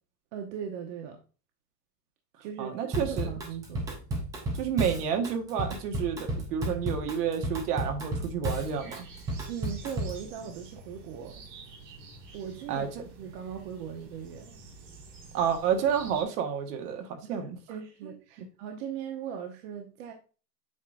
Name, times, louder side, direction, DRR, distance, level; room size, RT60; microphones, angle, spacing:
voice 1, 0.3-1.2 2.4-2.8 3.1-4.0 9.5-11.4 12.3-12.9 13.2-14.6 17.2-20.1, right 8 dB, 50° right, 1.1 m, -39 dB
voice 2, 2.6-3.3 4.6-9.0 12.7-12.9 15.3-17.6 18.0-18.1 18.4-18.5, right 8 dB, 65° right, 1.6 m, -30 dB
Drum kit / Drum, 2.9-10.2, right 1 dB, 10° right, 0.3 m, -33 dB
sound 1, 8.5-16.2, right 3 dB, 85° right, 2.9 m, -48 dB
8.1 x 5.0 x 2.5 m
supercardioid pair, 150°, 50 cm